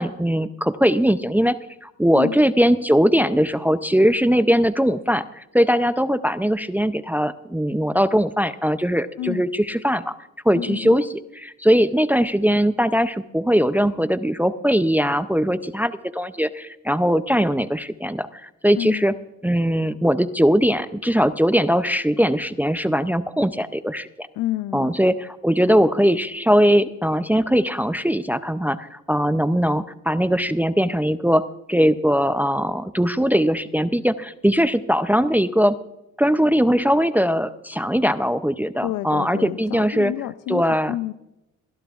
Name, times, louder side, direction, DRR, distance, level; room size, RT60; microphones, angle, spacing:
voice 1, 0.0-1.5 1.8-10.1 10.5-19.1 19.4-24.3 24.7-35.8 36.2-40.1 40.5-41.0, equal, 5° right, 12 dB, 0.5 m, -20 dB
voice 2, 10.5-11.0 18.8-19.1 24.4-24.9 38.8-40.6 40.9-41.1, left 14 dB, 85° left, 13 dB, 0.5 m, -29 dB
24.0 x 11.5 x 2.4 m, 0.90 s
cardioid pair, 90°, 30 cm